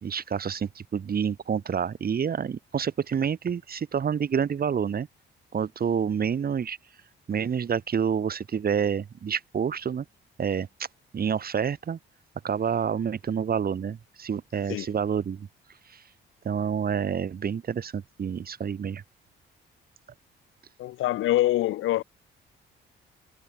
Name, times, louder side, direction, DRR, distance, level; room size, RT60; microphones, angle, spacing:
voice 1, 0.0-5.1 5.5-6.8 7.3-10.0 10.4-10.9 11.1-12.0 12.4-15.5 15.9-16.0 16.4-19.0, right 7 dB, 50° right, 4.8 m, -28 dB
voice 2, 20.8-22.0, left 15 dB, 85° left, 2.0 m, -24 dB
cardioid pair, 90°, 20 cm